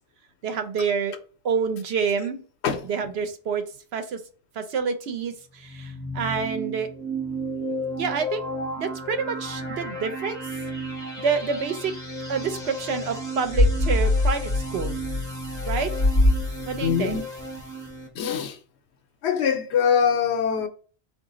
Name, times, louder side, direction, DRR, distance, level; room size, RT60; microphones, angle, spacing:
voice 1, 0.4-1.1 1.4-2.4 2.9-3.6 3.9-4.2 4.6-6.9 8.0-8.4 8.8-10.4 11.2-11.9 12.3-15.0 15.6-15.9 16.7-17.2, right 5 dB, 80° right, 0.9 m, -27 dB
sound 1, 5.5-18.1, right 1 dB, 5° left, 1.3 m, -34 dB
sound 2, 13.5-17.0, left 2 dB, 45° left, 0.8 m, -22 dB
voice 2, 16.8-17.3 18.1-18.6 19.2-20.7, left 7 dB, 85° left, 0.9 m, -23 dB
3.9 x 2.4 x 3.7 m
omnidirectional pair, 1.1 m